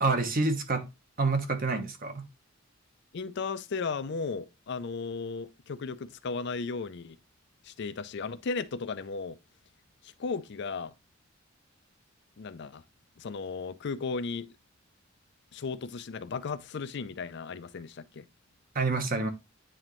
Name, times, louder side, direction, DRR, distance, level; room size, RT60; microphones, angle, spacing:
voice 1, 0.0-0.8 1.2-2.2 18.7-19.3, right 3 dB, 45° right, 1.1 m, -27 dB
voice 2, 3.1-7.2 7.6-9.4 10.0-10.9 12.4-12.8 13.2-14.5 15.5-18.3, left 4 dB, 60° left, 0.5 m, -35 dB
9.0 x 3.9 x 3.0 m
head